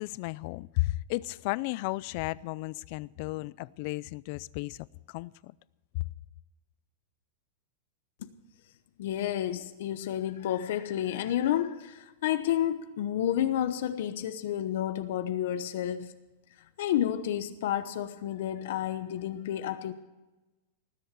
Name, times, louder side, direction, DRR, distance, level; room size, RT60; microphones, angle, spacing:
voice 1, 0.0-5.5 5.9-6.0, left 20 dB, 45° left, 0.4 m, -34 dB
voice 2, 9.0-16.1 16.8-19.9, left 11 dB, 60° left, 0.9 m, -30 dB
19.5 x 7.8 x 6.8 m
supercardioid pair, 165°, 0 cm